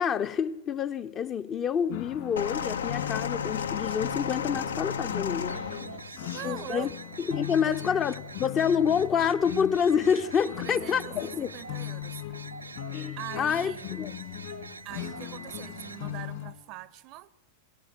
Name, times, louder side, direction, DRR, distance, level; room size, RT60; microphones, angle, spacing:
voice 1, 0.0-5.6 6.4-6.9 7.2-11.5 12.9-14.1, left 7 dB, 30° left, 0.6 m, -28 dB
sound 1, 1.9-16.5, left 15 dB, 55° left, 2.3 m, -39 dB
sound 2, 2.4-6.5 7.4-7.5, left 6 dB, 70° left, 0.6 m, -33 dB
voice 2, 5.5-6.9 7.6-7.8 10.5-12.2 13.2-13.9 14.8-17.3, right 16 dB, 40° right, 0.6 m, -42 dB
sound 3, 5.5-16.1, right 4 dB, 80° right, 0.6 m, -45 dB
21.5 x 17.5 x 7.4 m
figure-of-eight pair, 90°, 0 cm